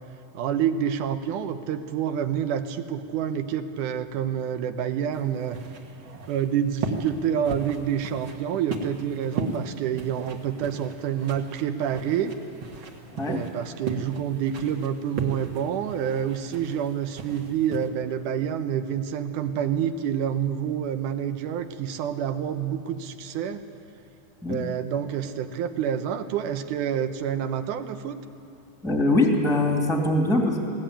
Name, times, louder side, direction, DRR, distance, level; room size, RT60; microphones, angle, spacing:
voice 1, 0.3-5.6 6.3-12.4 13.3-23.7 24.5-28.2, right 9 dB, 80° right, 9 dB, 2.4 m, -28 dB
sound 1, 5.1-17.9, right 3 dB, 45° right, 2.1 m, -37 dB
voice 2, 28.8-30.7, left 2 dB, ahead, 1 dB, 1.7 m, -22 dB
21.0 x 17.5 x 8.9 m, 2.8 s
omnidirectional pair, 3.6 m